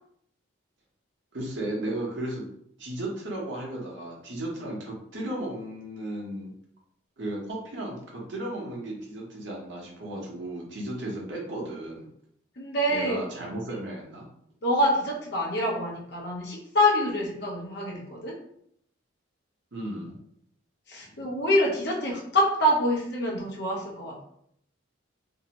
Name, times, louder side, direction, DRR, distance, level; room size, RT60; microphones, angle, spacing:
voice 1, 1.3-2.4 2.8-6.5 7.2-12.0 12.9-14.2 19.7-20.1, right 1 dB, 60° right, -2 dB, 0.8 m, -35 dB
voice 2, 12.6-13.2 14.6-18.4 20.9-24.2, equal, 55° left, -2 dB, 0.7 m, -26 dB
2.7 x 2.1 x 2.8 m, 0.69 s
head